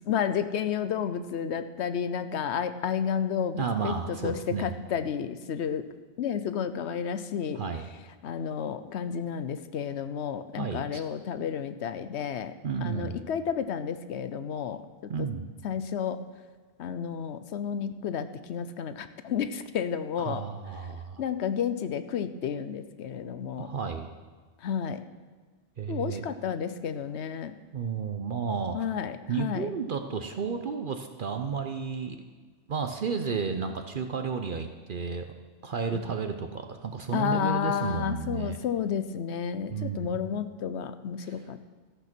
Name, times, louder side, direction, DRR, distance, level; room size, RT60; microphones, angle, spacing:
voice 1, 0.1-5.9 6.2-7.6 8.2-12.5 12.8-15.3 15.6-16.2 16.8-20.5 21.2-23.7 24.6-25.0 25.9-27.5 28.7-29.7 35.9-36.0 37.1-41.7, left 8 dB, 85° left, 11 dB, 1.0 m, -31 dB
voice 2, 3.6-4.7 7.5-7.9 10.6-11.0 12.6-13.2 15.1-15.4 20.2-21.2 23.6-24.1 25.8-26.3 27.7-28.8 29.3-32.2 32.7-35.3 35.6-38.6 39.7-40.2 41.2-41.5, right 5 dB, 55° right, 7 dB, 0.8 m, -32 dB
13.5 x 8.3 x 6.0 m, 1.5 s
omnidirectional pair, 1.1 m